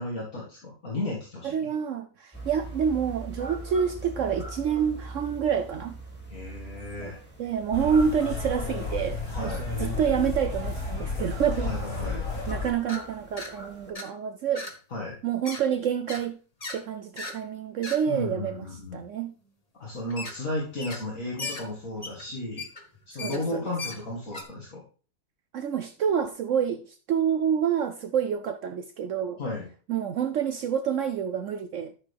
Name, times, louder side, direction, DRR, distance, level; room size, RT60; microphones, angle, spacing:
voice 1, 0.0-1.7 6.3-7.2 9.3-9.6 11.6-12.2 14.9-15.2 18.1-19.0 19.8-22.7 23.1-24.8 29.4-29.7, left 2 dB, 60° left, 2.4 m, -34 dB
voice 2, 1.4-6.0 7.0-7.1 7.4-11.7 12.5-14.7 15.2-16.4 16.7-18.7 18.9-19.3 23.2-23.7 25.5-29.4 29.9-31.9, right 8 dB, 65° right, 0.9 m, -28 dB
sound 1, 2.3-13.9, right 2 dB, 5° left, 2.4 m, -43 dB
sound 2, 7.7-12.7, left 3 dB, 75° left, 4.6 m, -32 dB
sound 3, 12.9-13.0 13.4-13.5 13.9-14.1 14.5-14.7 15.1-15.6 16.1-16.2 16.6-16.8 17.2-17.4 17.8-18.0 20.1-20.4 20.8-21.1 21.4-24.4, left 3 dB, 25° left, 1.5 m, -37 dB
12.5 x 6.4 x 3.4 m
omnidirectional pair, 1.6 m